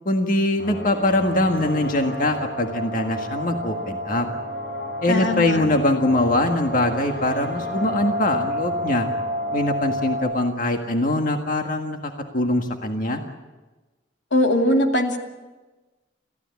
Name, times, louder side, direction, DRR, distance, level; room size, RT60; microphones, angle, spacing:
voice 1, 0.0-4.3 5.0-9.1 9.5-13.2, left 1 dB, 45° left, 3 dB, 1.8 m, -22 dB
sound 1, 0.6-10.2, equal, 60° left, 6.4 m, -30 dB
voice 2, 5.1-5.6 14.3-15.2, left 1 dB, 85° left, 3 dB, 2.7 m, -20 dB
28.5 x 15.0 x 8.4 m, 1.2 s
head